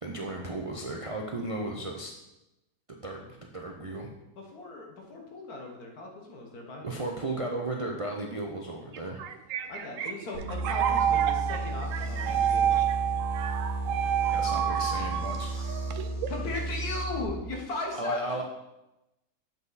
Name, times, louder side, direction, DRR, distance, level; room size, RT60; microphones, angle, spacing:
voice 1, 0.0-2.1 2.9-4.1 6.8-9.2 14.3-15.5 17.9-18.4, right 2 dB, 50° right, 0 dB, 0.4 m, -35 dB
voice 2, 4.4-7.1 9.7-12.8 16.3-18.2, left 2 dB, 85° left, 1 dB, 1.9 m, -37 dB
sound 1, 8.9-16.5, right 10 dB, 70° right, 0.9 m, -29 dB
sound 2, 10.3-17.2, right 1 dB, 45° left, 2.2 m, -34 dB
7.6 x 5.6 x 4.0 m, 0.94 s
omnidirectional pair, 1.6 m